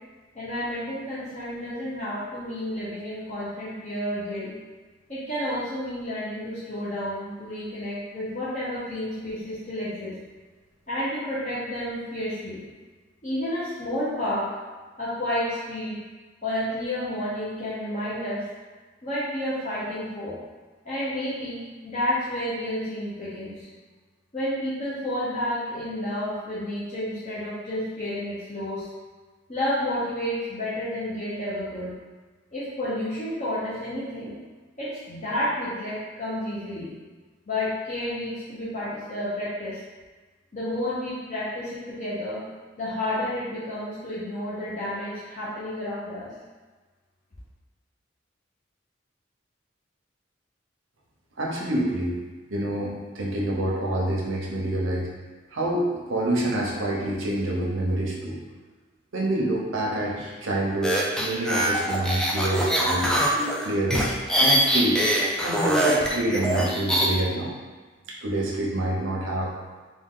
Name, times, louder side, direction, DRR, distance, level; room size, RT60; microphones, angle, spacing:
voice 1, 0.3-4.5 5.1-10.1 10.9-12.6 13.2-14.5 15.0-16.0 16.4-18.4 19.0-20.4 20.8-23.7 24.3-28.9 29.5-31.9 32.5-34.4 34.8-36.9 37.5-39.8 40.5-42.4 42.8-46.3, left 1 dB, 40° left, -10 dB, 0.9 m, -30 dB
voice 2, 51.4-52.2 52.5-55.1 55.5-58.4 59.1-63.3 63.6-64.1 64.4-65.0 65.4-67.5 68.1-69.5, right 1 dB, 85° right, -3 dB, 0.8 m, -27 dB
sound 1, 60.8-67.1, equal, 5° left, 0.3 m, -23 dB
3.6 x 2.4 x 3.7 m, 1.3 s
head